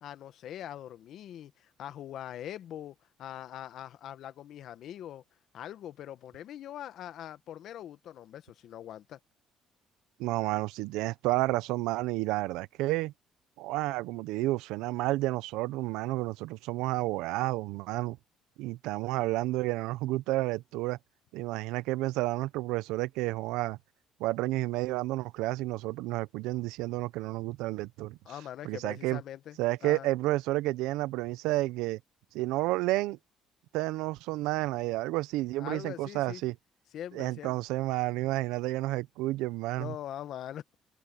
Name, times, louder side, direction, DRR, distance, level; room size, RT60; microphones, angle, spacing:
voice 1, 0.0-5.2 5.5-9.2 28.2-30.1 35.6-36.4 36.9-37.6 39.8-40.7, left 11 dB, 60° left, 1.3 m, -42 dB
voice 2, 10.2-13.1 13.6-18.2 18.6-21.0 21.3-23.8 24.2-28.2 28.6-29.2 29.6-32.0 32.3-33.2 33.7-36.5 37.1-39.9, right 18 dB, 90° right, 0.6 m, -31 dB
cardioid pair, 110°, 0 cm